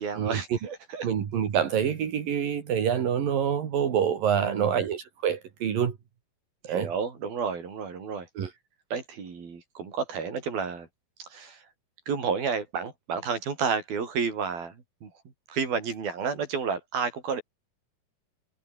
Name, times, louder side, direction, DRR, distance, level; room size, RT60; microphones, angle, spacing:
voice 1, 0.0-1.1 4.4-4.8 6.7-8.3 8.9-10.9 11.3-11.6 12.1-14.8 15.0-15.1 15.5-17.4, right 5 dB, 90° right, 6.7 m, -31 dB
voice 2, 1.0-6.0 6.7-6.9 8.4-8.5, right 8 dB, 70° right, 4.3 m, -26 dB
omnidirectional pair, 4.1 m